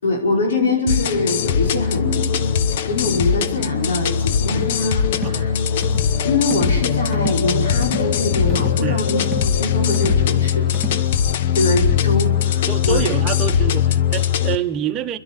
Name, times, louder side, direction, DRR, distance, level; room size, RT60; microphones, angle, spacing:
voice 1, 0.0-2.3 2.7-5.5 6.0-10.7 11.5-13.1, left 2 dB, 90° left, 5.1 m, -23 dB
sound 1, 0.9-14.6, left 8 dB, 65° left, 0.9 m, -20 dB
sound 2, 4.5-4.8 5.1-5.4 5.8-6.1 6.5-6.8 7.1-7.5 7.8-8.1 8.5-8.8 9.2-9.5 9.9-10.3 10.7-11.1, right 3 dB, 5° left, 1.5 m, -32 dB
voice 2, 12.6-15.2, right 10 dB, 30° right, 1.2 m, -26 dB
26.5 x 11.5 x 9.2 m
hypercardioid pair, 135°, 0 cm